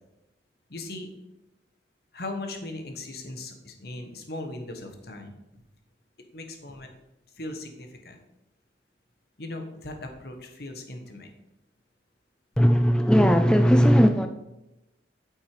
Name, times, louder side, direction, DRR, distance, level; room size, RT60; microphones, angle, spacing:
voice 1, 0.7-1.1 2.1-5.4 6.3-6.9 7.4-8.2 9.4-11.3, left 2 dB, 60° left, 1.3 m, -38 dB
voice 2, 12.6-14.3, equal, 5° left, 0.4 m, -18 dB
8.7 x 6.2 x 4.9 m
head